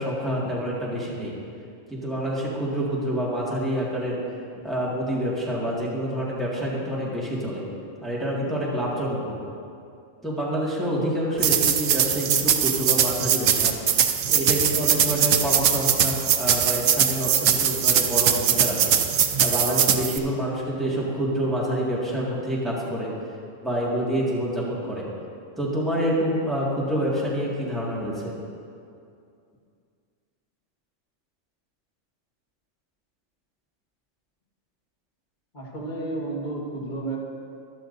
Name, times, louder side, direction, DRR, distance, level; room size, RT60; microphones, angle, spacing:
voice 1, 0.0-1.3 1.9-4.2 4.6-7.6 8.0-9.4 10.2-13.7 14.3-18.9 19.4-23.1 23.6-25.0 25.6-28.3, equal, ahead, -6 dB, 1.9 m, -27 dB
sound 1, 11.4-20.2, right 8 dB, 85° right, 1.0 m, -21 dB
voice 2, 35.5-37.2, right 2 dB, 40° left, -4 dB, 1.8 m, -31 dB
13.5 x 11.5 x 2.6 m, 2.4 s
omnidirectional pair, 1.3 m